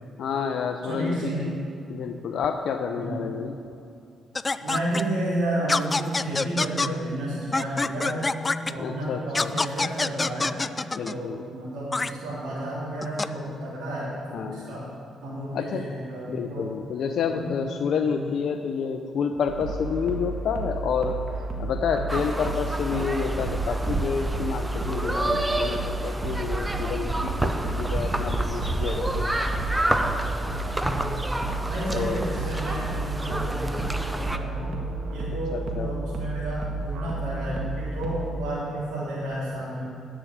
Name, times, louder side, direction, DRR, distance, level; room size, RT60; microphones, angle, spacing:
voice 1, 0.2-1.3 1.9-3.6 8.8-9.5 10.9-11.4 14.3-14.8 15.5-15.9 16.3-21.2 21.6-29.5 31.9-32.2 33.8-33.9 35.5-35.9, left 6 dB, 65° left, 5 dB, 0.6 m, -29 dB
voice 2, 0.9-1.6 2.9-3.2 4.6-8.3 8.7-10.5 11.0-14.9 15.2-16.7 17.3-17.5 18.0-18.2 30.7-31.0 31.6-34.7 35.1-39.9, right 1 dB, 85° right, -10 dB, 3.3 m, -31 dB
sound 1, 4.4-5.0 5.7-6.9 7.5-8.7 9.3-11.2 11.9-12.1 13.0-13.3, left 3 dB, 25° left, 0.4 m, -25 dB
sound 2, 19.5-38.3, right 2 dB, 65° right, 1.8 m, -32 dB
sound 3, 22.1-34.4, right 1 dB, 10° right, 0.7 m, -29 dB
12.0 x 6.2 x 8.6 m, 2.7 s
cardioid pair, 90°, 0 cm